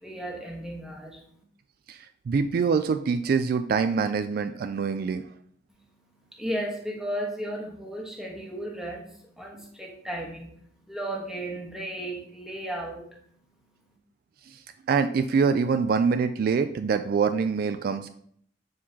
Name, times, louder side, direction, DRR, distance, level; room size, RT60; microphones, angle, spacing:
voice 1, 0.0-1.2 6.4-10.5 10.9-13.0, right 1 dB, 5° right, -1 dB, 1.2 m, -34 dB
voice 2, 1.9-5.3 14.5-14.6 14.9-18.1, right 5 dB, 55° right, 9 dB, 0.3 m, -25 dB
7.2 x 4.6 x 2.8 m, 0.64 s
head